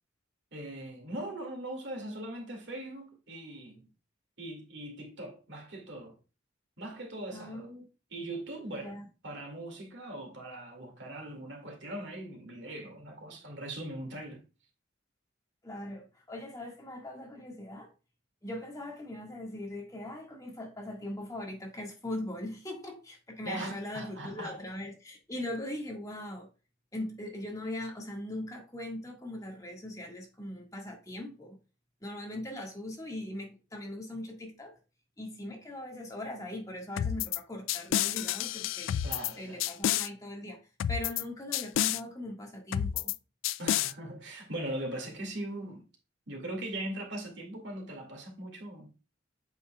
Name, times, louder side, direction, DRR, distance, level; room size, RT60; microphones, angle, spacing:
voice 1, 0.5-3.9 4.4-6.2 6.8-7.7 8.1-8.9 9.2-14.4 23.4-24.6 39.0-39.6 43.6-45.8 46.3-48.9, right 1 dB, 65° right, 2.2 m, -40 dB
voice 2, 7.3-7.8 8.8-9.1 15.6-17.9 18.4-26.5 26.9-31.6 32.0-34.7 35.2-38.9 39.4-40.6 40.9-43.1, left 1 dB, 20° left, 1.7 m, -40 dB
sound 1, 37.0-37.4 37.7-39.3 39.6-40.1 40.8-41.2 41.5-42.0 42.7-43.2 43.4-43.9, left 11 dB, 85° left, 0.3 m, -29 dB
8.1 x 5.7 x 2.3 m
head